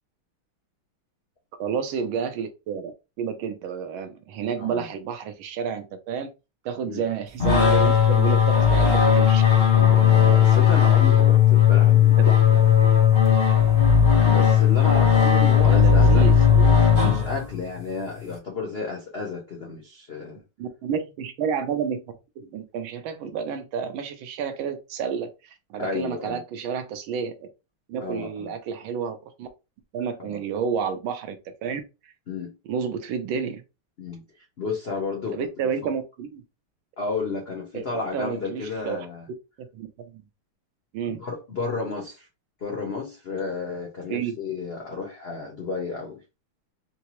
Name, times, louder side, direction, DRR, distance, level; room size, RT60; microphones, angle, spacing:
voice 1, 1.6-2.9 3.2-6.3 6.6-9.4 12.2-12.3 15.6-16.7 20.6-22.0 22.4-27.5 27.9-29.5 29.9-32.1 32.7-33.6 35.3-36.4 37.7-39.1 39.7-40.2 40.9-41.2 44.1-44.4, right 7 dB, 75° right, 1.4 m, -30 dB
sound 1, 7.4-17.7, left 8 dB, 45° left, 1.4 m, -17 dB
voice 2, 9.7-12.6 14.2-16.4 16.7-20.4 25.8-26.4 28.0-28.5 30.3-30.4 32.3-32.5 34.0-34.2 34.6-35.5 37.0-39.3 41.0-42.3 42.6-46.2, left 4 dB, 85° left, 0.5 m, -32 dB
4.4 x 2.0 x 2.9 m
omnidirectional pair, 2.3 m